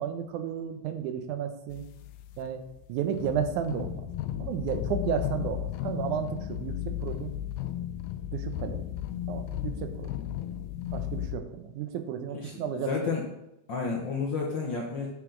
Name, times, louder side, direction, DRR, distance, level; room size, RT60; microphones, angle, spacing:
voice 1, 0.0-1.8 2.4-2.6 2.9-4.1 4.4-7.3 8.3-8.9 9.3-10.1 10.9-12.9, right 8 dB, 85° right, 8 dB, 2.2 m, -33 dB
sound 1, 1.7-11.4, left 11 dB, 90° left, 2.1 m, -35 dB
voice 2, 12.3-13.2 13.7-15.1, left 4 dB, 65° left, -2 dB, 1.1 m, -31 dB
7.8 x 7.1 x 3.8 m, 0.86 s
omnidirectional pair, 3.5 m